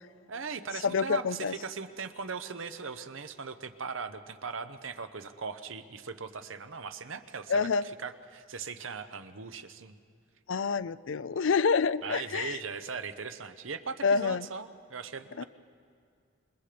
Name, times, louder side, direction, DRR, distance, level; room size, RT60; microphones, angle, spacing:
voice 1, 0.3-9.9 12.0-15.5, right 5 dB, 75° right, 9 dB, 1.0 m, -39 dB
voice 2, 0.8-1.5 7.5-7.8 10.5-12.6 14.0-14.5 15.4-15.5, left 5 dB, 70° left, 17 dB, 0.5 m, -27 dB
27.0 x 21.5 x 5.1 m, 2.3 s
head